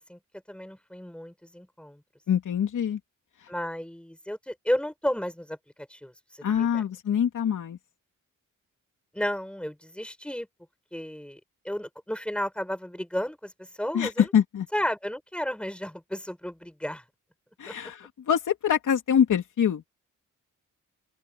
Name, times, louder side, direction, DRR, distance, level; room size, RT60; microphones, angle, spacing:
voice 1, 0.5-2.0 3.5-5.6 5.9-6.8 9.1-10.5 10.9-11.4 11.6-13.5 13.8-14.3 14.7-17.0 17.7-17.8, equal, 5° left, 6.7 m, -33 dB
voice 2, 2.3-3.0 6.4-7.8 13.9-14.7 17.6-19.9, left 8 dB, 70° left, 3.2 m, -25 dB
open air
wide cardioid pair, 165°, 32 cm